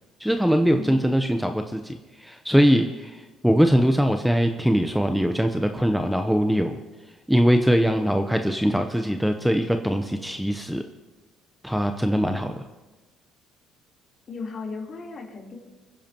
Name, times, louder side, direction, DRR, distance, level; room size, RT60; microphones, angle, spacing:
voice 1, 0.2-6.8 7.3-10.8 11.6-12.5, equal, ahead, 6 dB, 0.8 m, -22 dB
voice 2, 0.7-1.1 14.3-15.6, left 4 dB, 45° left, -1 dB, 3.6 m, -35 dB
25.5 x 10.5 x 3.0 m, 1.2 s
supercardioid pair, 80°, 0 cm